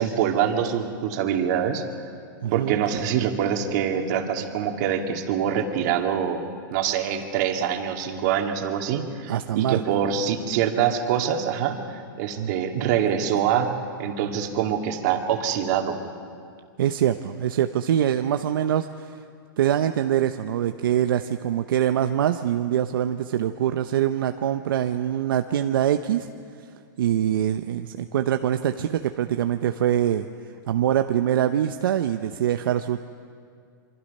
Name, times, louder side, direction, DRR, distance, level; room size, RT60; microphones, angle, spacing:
voice 1, 0.0-1.8 2.5-6.4 6.7-13.7 14.0-16.0, right 8 dB, 55° right, 4 dB, 2.4 m, -25 dB
voice 2, 2.4-2.8 9.3-9.8 12.4-12.5 16.8-19.2 19.6-26.3 27.0-30.3 30.7-33.0, right 10 dB, 80° right, 8 dB, 0.8 m, -24 dB
27.0 x 24.5 x 5.5 m, 2.3 s
hypercardioid pair, 135°, 11 cm